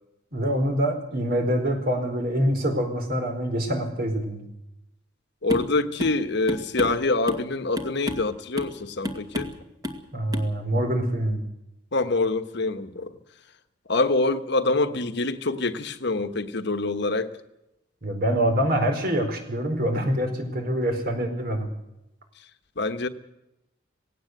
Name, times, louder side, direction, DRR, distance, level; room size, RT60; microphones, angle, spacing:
voice 1, 0.3-4.5 10.1-11.4 18.0-21.7, equal, 50° right, 4.6 m, -25 dB
voice 2, 5.4-9.5 11.9-13.2 13.9-17.3 22.8-23.1, left 2 dB, 65° left, 1.3 m, -25 dB
sound 1, 5.5-5.7 6.0-6.2 6.5-7.5 7.8-8.3 8.6-8.8 9.0-9.6 9.8-10.0 10.3-10.5, left 1 dB, 20° right, 2.1 m, -31 dB
19.0 x 17.0 x 8.0 m
head